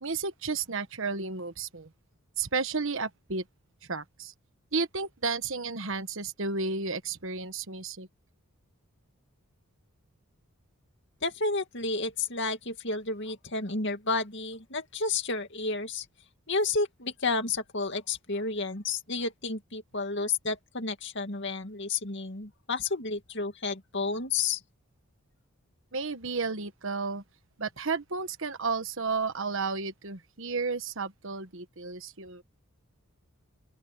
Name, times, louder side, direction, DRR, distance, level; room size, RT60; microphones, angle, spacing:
voice 1, 0.0-1.9 2.4-3.4 3.9-4.3 4.7-8.1 25.9-27.2 27.6-32.4, right 4 dB, 60° right, 1.3 m, -32 dB
voice 2, 11.2-16.1 16.5-24.6, left 3 dB, 55° left, 2.4 m, -31 dB
open air
head